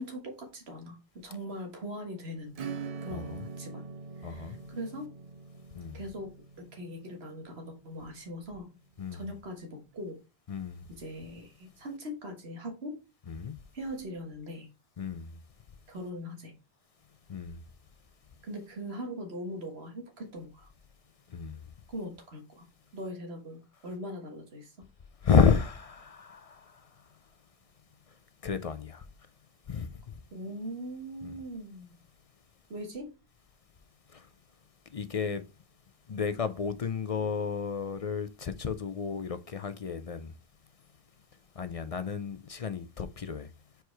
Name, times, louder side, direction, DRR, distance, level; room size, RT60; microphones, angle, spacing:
voice 1, 0.0-2.5 3.0-3.9 4.2-5.2 5.9-8.7 9.1-10.2 10.9-13.0 13.7-14.7 15.9-16.5 18.4-20.7 21.9-22.7 22.9-24.8 30.3-32.0 32.7-33.1, equal, 75° right, 1.7 m, -41 dB
Acoustic guitar / Strum, 2.5-8.8, right 5 dB, 45° right, 0.5 m, -44 dB
voice 2, 3.1-3.4 4.2-4.6 5.7-6.0 9.0-9.3 10.5-10.9 13.3-13.6 15.0-15.4 17.3-17.6 21.3-21.7 25.2-27.2 28.1-28.2 28.4-29.1 29.7-30.2 31.2-31.3 34.1-34.3 34.9-35.4 36.1-40.3 41.5-43.5, left 6 dB, 45° left, 0.5 m, -31 dB
4.6 x 4.6 x 4.5 m
omnidirectional pair, 1.1 m